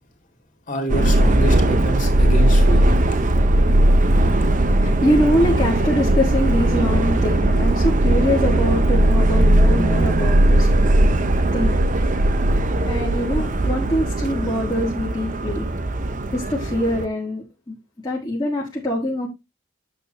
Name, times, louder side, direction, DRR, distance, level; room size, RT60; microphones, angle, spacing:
voice 1, 0.7-2.9, equal, 40° left, 2.3 m, -27 dB
Subway metro underground, 0.9-17.0, right 1 dB, 40° right, 0.7 m, -18 dB
voice 2, 4.8-15.7 16.3-17.7 18.0-19.3, left 1 dB, 20° left, 1.5 m, -24 dB
8.9 x 6.7 x 2.7 m
head